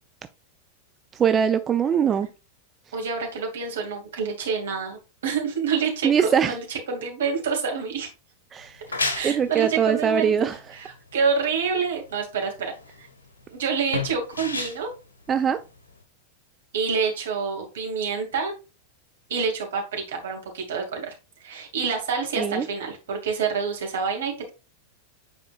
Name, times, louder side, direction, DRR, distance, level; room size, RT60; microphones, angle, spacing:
voice 1, 1.2-2.3 6.0-6.5 8.5-8.8 9.2-10.6 15.3-15.6 22.4-22.7, right 7 dB, 25° right, 9 dB, 0.4 m, -22 dB
voice 2, 2.9-8.1 9.1-12.7 13.0-13.1 13.5-14.9 16.7-18.5 19.3-24.5, right 5 dB, 60° right, 2 dB, 2.4 m, -27 dB
sound 1, 8.6-16.0, left 3 dB, 70° left, 1.3 m, -34 dB
9.4 x 4.4 x 2.4 m, 0.31 s
figure-of-eight pair, 90°, 0 cm